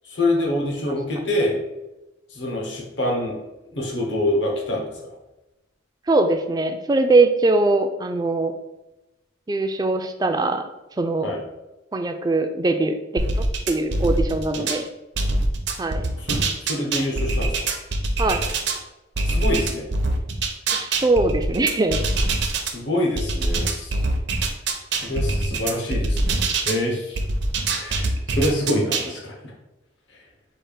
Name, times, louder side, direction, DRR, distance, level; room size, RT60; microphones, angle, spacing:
voice 1, 0.1-1.6 2.3-3.4 3.7-5.1 11.2-11.4 14.5-14.7 16.2-17.7 19.2-19.9 22.6-24.0 24.9-27.2 27.6-29.4, left 1 dB, 65° left, -1 dB, 1.1 m, -26 dB
voice 2, 6.1-8.5 9.5-10.6 11.0-11.3 11.9-14.9 15.8-16.1 18.2-18.5 20.7-22.0, right 2 dB, 20° right, 6 dB, 0.3 m, -21 dB
sound 1, 13.2-14.8 15.2-18.8 19.2-22.7 23.2-26.8 27.2-29.1, right 2 dB, 65° right, 0.6 m, -24 dB
4.4 x 2.5 x 4.9 m, 1.0 s
head